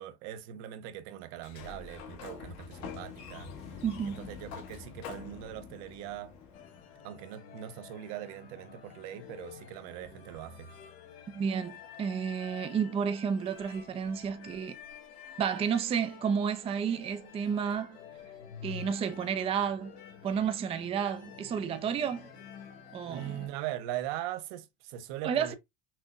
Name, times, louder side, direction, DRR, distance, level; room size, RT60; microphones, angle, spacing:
voice 1, 0.0-6.3 7.0-10.7 23.1-25.6, right 12 dB, 90° right, 0.8 m, -41 dB
Sliding door, 1.3-7.0, left 6 dB, 60° left, 1.2 m, -45 dB
voice 2, 3.8-4.3 11.3-14.8 15.4-18.0 18.6-19.9 20.2-22.3 22.9-23.4 25.2-25.5, right 7 dB, 20° right, 0.4 m, -31 dB
sound 1, 6.5-23.5, left 7 dB, 90° left, 2.1 m, -49 dB
5.9 x 2.1 x 2.5 m
cardioid pair, 155°, 30 cm